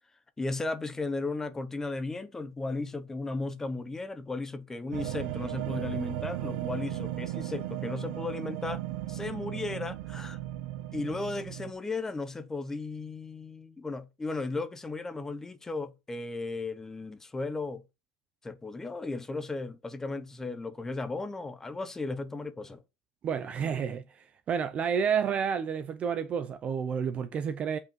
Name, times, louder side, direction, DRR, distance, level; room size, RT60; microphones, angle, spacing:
voice 1, 0.4-8.8 9.1-10.4 10.9-17.8 18.4-22.8, left 3 dB, 5° left, 0.8 m, -35 dB
sound 1, 4.9-11.7, right 15 dB, 55° right, 1.3 m, -36 dB
voice 2, 23.2-27.8, right 7 dB, 20° right, 0.5 m, -30 dB
8.1 x 5.3 x 5.3 m
supercardioid pair, 180°, 6 cm